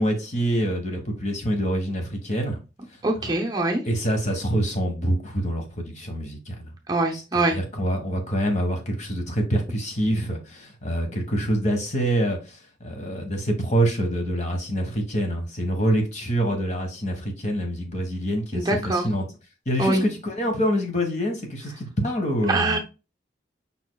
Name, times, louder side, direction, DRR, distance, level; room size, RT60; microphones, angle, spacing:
voice 1, 0.0-2.6 3.2-3.3 3.8-6.7 7.1-7.2 7.5-19.3 19.7-22.8, equal, 40° left, 1.3 m, -26 dB
voice 2, 3.0-3.8 6.9-7.6 18.5-19.1 19.8-20.0 22.5-22.8, right 2 dB, 20° right, 0.7 m, -23 dB
5.4 x 4.3 x 2.2 m
head